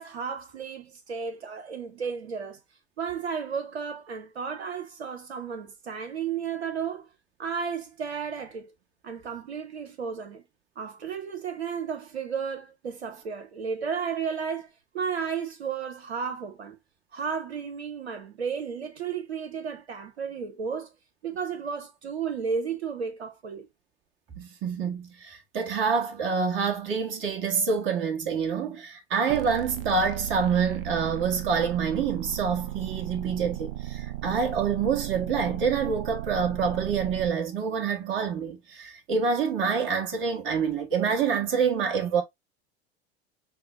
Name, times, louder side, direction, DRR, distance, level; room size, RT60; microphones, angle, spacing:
voice 1, 0.0-2.6 3.0-7.1 7.4-8.7 9.0-10.4 10.8-16.8 17.1-20.9 21.2-23.7, right 6 dB, 80° right, 1.0 m, -33 dB
voice 2, 24.4-42.2, right 6 dB, 40° right, 1.4 m, -27 dB
sound 1, 29.3-37.3, right 13 dB, 60° right, 0.7 m, -36 dB
5.8 x 2.1 x 3.3 m
figure-of-eight pair, 85°, 32 cm